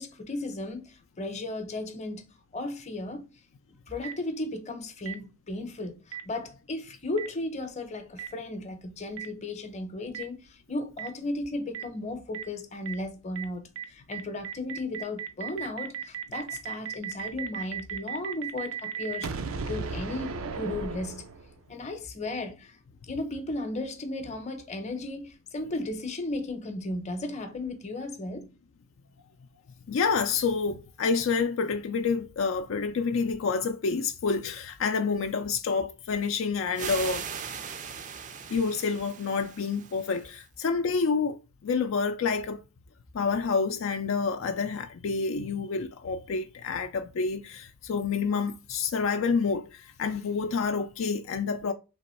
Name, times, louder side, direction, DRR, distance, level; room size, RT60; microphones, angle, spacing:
voice 1, 0.0-2.3 2.5-3.2 3.9-19.3 19.7-21.3 21.7-22.8 23.1-28.5, left 2 dB, 35° left, 0.7 m, -35 dB
Boom, 4.0-4.1 5.1-5.2 6.1-6.2 7.2-7.3 8.2-8.3 9.2-9.3 10.1-10.2 11.0-11.1 11.7-11.8 12.3-12.4 12.9-13.0 13.4-13.5 13.8-13.9 14.1-21.7, right 6 dB, 90° right, 0.6 m, -35 dB
voice 2, 29.9-37.2 38.5-42.6 43.1-51.7, left 5 dB, 70° left, 0.4 m, -28 dB
sound 1, 36.7-40.4, right 7 dB, 35° right, 0.4 m, -39 dB
3.5 x 3.0 x 4.2 m
head